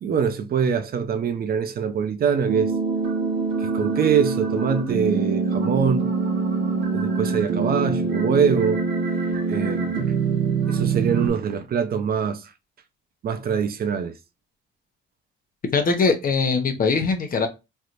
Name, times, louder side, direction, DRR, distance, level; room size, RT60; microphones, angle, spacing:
voice 1, 0.0-2.7 3.6-6.1 6.9-8.8 9.5-10.1 10.7-12.5 13.2-14.1, right 7 dB, 50° right, 0.5 m, -24 dB
sound 1, 2.5-11.3, right 4 dB, 75° right, 1.2 m, -24 dB
voice 2, 15.7-17.5, left 4 dB, 45° left, 0.9 m, -21 dB
3.3 x 2.8 x 2.5 m
cardioid pair, 90°, 20 cm